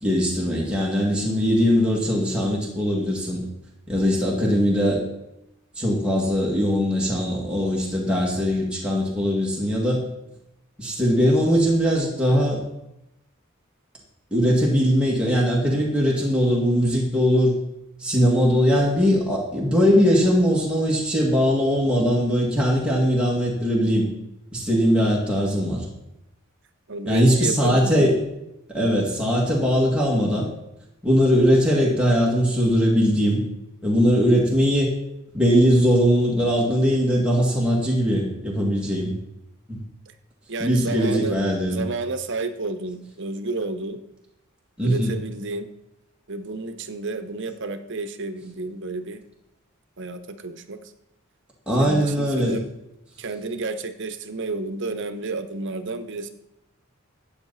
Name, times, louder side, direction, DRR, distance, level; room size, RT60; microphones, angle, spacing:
voice 1, 0.0-3.4 3.9-5.0 5.8-10.0 10.8-12.6 14.3-17.5 18.0-24.0 24.5-25.9 27.1-28.2 28.7-30.5 31.0-33.4 33.8-34.9 35.3-39.1 39.7-39.8 40.6-41.8 44.8-45.1 51.7-52.6, equal, 5° right, -4 dB, 2.2 m, -20 dB
voice 2, 26.9-28.1 28.8-28.9 38.8-38.9 40.5-41.4 41.7-44.0 44.8-45.7 46.3-49.2 50.0-50.9 51.8-52.7 53.2-56.3, right 3 dB, 60° right, 9 dB, 0.9 m, -31 dB
13.5 x 8.8 x 4.2 m, 0.87 s
head